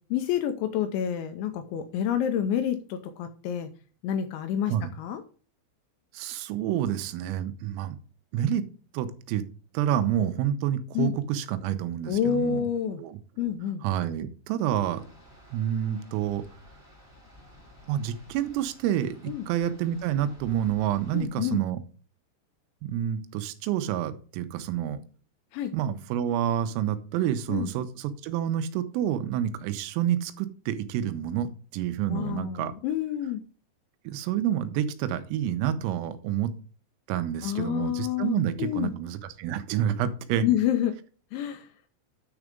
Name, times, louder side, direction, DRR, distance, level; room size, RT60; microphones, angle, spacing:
voice 1, 0.1-3.7 4.0-5.2 10.9-11.1 12.1-13.0 13.4-13.8 19.3-19.5 21.1-21.6 25.5-25.7 27.5-27.7 32.1-33.4 37.4-38.9 40.4-40.9 41.3-41.7, left 9 dB, 80° left, 8 dB, 2.7 m, -28 dB
voice 2, 6.1-8.0 8.3-8.6 8.9-9.4 9.8-12.6 13.0-13.2 13.8-15.0 15.5-16.4 17.9-19.2 19.5-21.8 22.8-25.0 25.7-32.7 34.1-36.5 37.1-40.5, right 10 dB, 85° right, 10 dB, 3.5 m, -28 dB
sound 1, 14.6-21.2, equal, 5° left, 1.8 m, -53 dB
9.8 x 4.8 x 5.1 m, 0.39 s
omnidirectional pair, 5.9 m